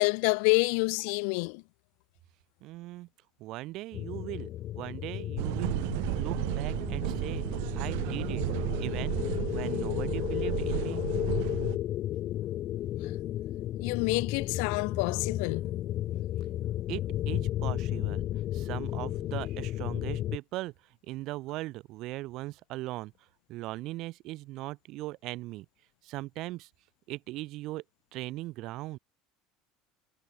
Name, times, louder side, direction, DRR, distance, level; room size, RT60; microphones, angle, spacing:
voice 1, 0.0-1.6 13.8-15.7, left 39 dB, 70° left, 1.3 m, -27 dB
voice 2, 2.6-3.1 3.4-4.5 4.7-5.9 6.1-8.4 8.8-9.2 9.5-11.0 16.9-18.3 18.5-20.7 21.0-23.1 23.5-25.7 26.0-26.7 27.1-27.8 28.1-29.0, right 18 dB, 50° right, 4.1 m, -39 dB
sound 1, 3.9-20.4, left 13 dB, 40° left, 0.3 m, -33 dB
sound 2, 5.4-11.8, right 32 dB, 75° right, 1.1 m, -33 dB
cardioid pair, 160°, 0 cm